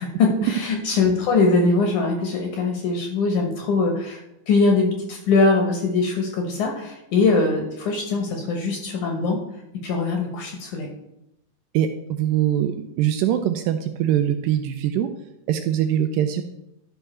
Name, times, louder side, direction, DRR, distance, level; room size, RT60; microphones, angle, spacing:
voice 1, 0.0-9.4 9.8-10.9, left 3 dB, 65° left, 2 dB, 2.2 m, -22 dB
voice 2, 11.7-15.1 15.5-16.4, right 10 dB, 85° right, 7 dB, 2.0 m, -22 dB
12.0 x 5.7 x 4.3 m, 0.86 s
omnidirectional pair, 4.5 m